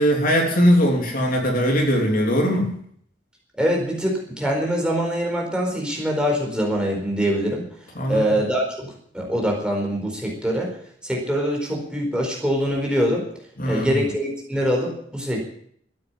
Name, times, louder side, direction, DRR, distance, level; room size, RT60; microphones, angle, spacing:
voice 1, 0.0-2.7 7.9-8.4 13.6-14.0, equal, 50° left, 1 dB, 3.4 m, -20 dB
voice 2, 3.6-7.6 8.1-10.7 11.0-13.2 13.6-15.4, equal, 5° right, -2 dB, 4.5 m, -24 dB
13.5 x 9.6 x 9.9 m, 0.64 s
head